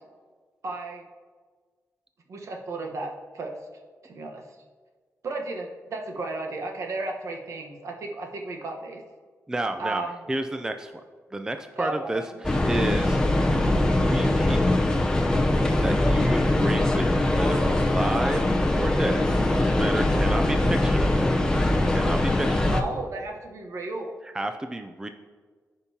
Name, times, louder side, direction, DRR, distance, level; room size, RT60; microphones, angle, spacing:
voice 1, 0.6-1.1 2.3-3.6 4.0-4.4 5.2-9.0 9.8-10.3 11.8-12.4 22.7-24.2, right 2 dB, 65° right, 2 dB, 1.1 m, -34 dB
voice 2, 9.5-10.9 11.3-13.2 13.8-14.6 15.8-21.4 21.8-22.8 24.3-25.1, right 2 dB, 10° right, 7 dB, 0.4 m, -31 dB
sound 1, 12.4-22.8, left 1 dB, 15° left, 0.7 m, -22 dB
14.5 x 5.3 x 2.8 m, 1.5 s
wide cardioid pair, 125°, 6 cm